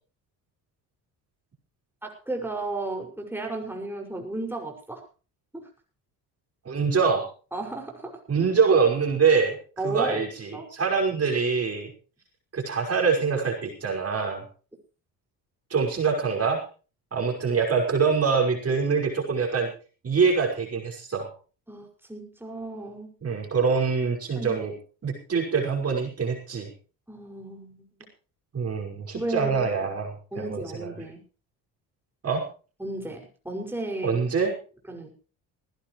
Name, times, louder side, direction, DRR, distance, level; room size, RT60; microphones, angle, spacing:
voice 1, 2.0-5.0 5.5-5.7 7.5-8.2 9.8-10.2 10.5-10.7 21.7-23.1 24.4-24.7 27.1-27.9 29.1-29.7 30.3-31.2 32.8-34.2 34.9-35.1, right 2 dB, 5° right, 1 dB, 5.9 m, -34 dB
voice 2, 6.6-7.2 8.3-9.6 9.8-11.9 12.5-14.4 15.7-16.6 17.1-19.7 20.0-21.3 23.2-24.7 25.0-26.7 28.5-30.1 30.4-30.9 32.2-32.4 34.0-34.5, right 5 dB, 35° right, 1 dB, 5.6 m, -24 dB
19.5 x 16.0 x 3.2 m, 0.37 s
supercardioid pair, 90°, 40 cm